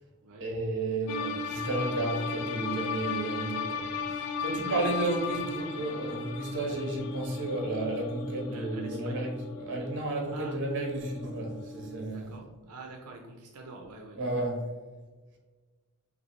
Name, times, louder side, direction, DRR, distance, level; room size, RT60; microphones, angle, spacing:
voice 1, 0.4-12.4 14.1-14.7, right 2 dB, 55° right, 1.0 m, -32 dB
sound 1, 1.1-12.1, left 4 dB, 85° left, 0.4 m, -36 dB
voice 2, 4.3-4.9 8.5-9.3 10.3-10.6 12.1-14.4, right 3 dB, 85° right, 0.5 m, -46 dB
5.9 x 2.6 x 3.1 m
head